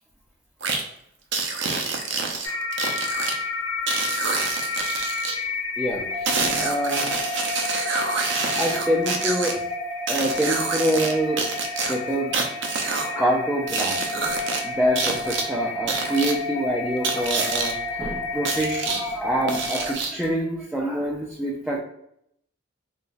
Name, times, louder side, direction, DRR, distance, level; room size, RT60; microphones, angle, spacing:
sound 1, 0.6-0.8 1.3-3.3 3.9-5.4 6.2-9.5 10.1-11.1 11.4-13.1 13.7-14.6 14.9-15.4 15.9-16.3 17.0-17.7 18.4-19.0 19.5-20.2, right 4 dB, 65° right, 0.6 m, -27 dB
sound 2, 2.4-19.9, left 2 dB, 75° left, 1.1 m, -30 dB
voice 1, 5.8-7.3 8.6-9.6 10.1-11.4 11.9-12.4 13.2-14.4 14.6-21.8, equal, 5° right, -4 dB, 0.4 m, -26 dB
3.6 x 3.0 x 2.4 m, 0.75 s
head